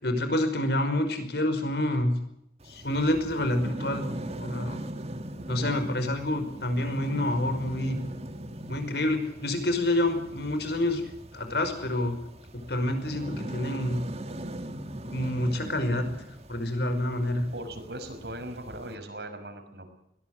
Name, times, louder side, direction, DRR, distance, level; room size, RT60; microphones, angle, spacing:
voice 1, 0.0-2.1 2.7-4.1 4.4-4.8 5.5-8.0 8.7-11.0 11.3-12.2 12.7-14.0 14.8-16.1 16.5-17.5, left 1 dB, 60° left, 8 dB, 5.4 m, -28 dB
sound 1, 2.6-19.0, right 1 dB, 35° right, 1.9 m, -40 dB
voice 2, 17.5-19.9, right 1 dB, 65° right, 6 dB, 5.9 m, -39 dB
22.5 x 19.5 x 8.0 m, 0.76 s
head